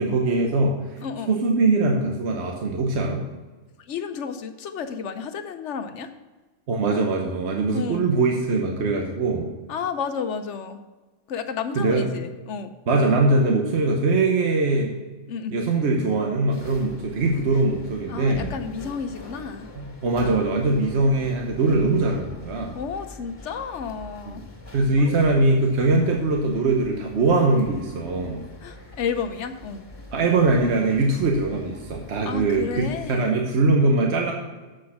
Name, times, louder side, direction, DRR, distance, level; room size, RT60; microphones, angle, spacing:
voice 1, 0.0-1.0 1.3-3.2 6.7-9.5 11.8-12.1 12.9-14.9 15.5-18.5 19.8-22.8 24.7-28.4 30.1-34.3, right 3 dB, 60° right, 1 dB, 1.2 m, -22 dB
voice 2, 1.0-1.4 3.8-6.1 7.7-8.1 9.7-10.8 11.3-12.7 15.3-15.5 18.1-19.7 22.7-24.4 25.0-25.2 28.6-29.8 32.2-33.4, left 6 dB, 70° left, 9 dB, 1.1 m, -31 dB
sound 1, 16.5-33.2, left 1 dB, 25° left, 2.3 m, -43 dB
7.7 x 6.3 x 5.8 m, 1.3 s
omnidirectional pair, 1.3 m